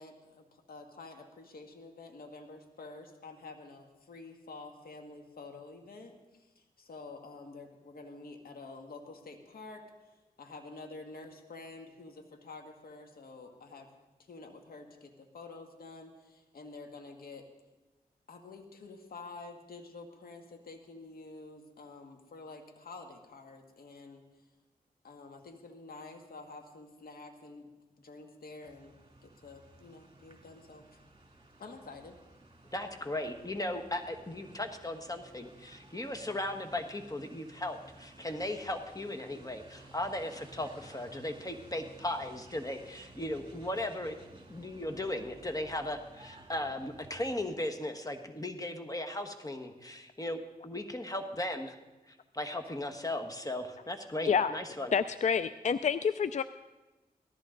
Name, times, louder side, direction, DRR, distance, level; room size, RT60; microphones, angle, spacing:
voice 1, 0.0-9.9 10.4-13.9 14.2-17.5 18.3-24.2 25.0-27.7 28.0-28.9 29.2-30.9 31.6-32.2, left 3 dB, 70° left, 4 dB, 1.7 m, -49 dB
sound 1, 28.6-47.4, right 2 dB, 35° right, 3.0 m, -55 dB
voice 2, 32.7-51.8 52.1-54.9, left 1 dB, 20° left, 5 dB, 1.6 m, -37 dB
voice 3, 54.9-56.4, left 6 dB, 50° left, 13 dB, 0.4 m, -28 dB
18.0 x 14.0 x 3.9 m, 1.1 s
cardioid pair, 55°, 16 cm